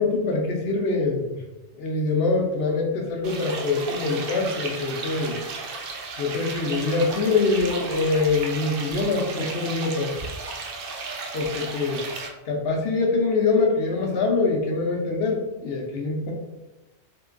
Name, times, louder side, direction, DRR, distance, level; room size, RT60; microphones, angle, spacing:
voice 1, 0.0-1.4 1.8-5.4 6.2-10.1 11.3-12.0 12.5-16.3, left 3 dB, 65° left, 0 dB, 0.8 m, -24 dB
sound 1, 3.2-12.3, right 3 dB, 65° right, 0.7 m, -34 dB
3.7 x 2.6 x 2.4 m, 1.0 s
omnidirectional pair, 1.2 m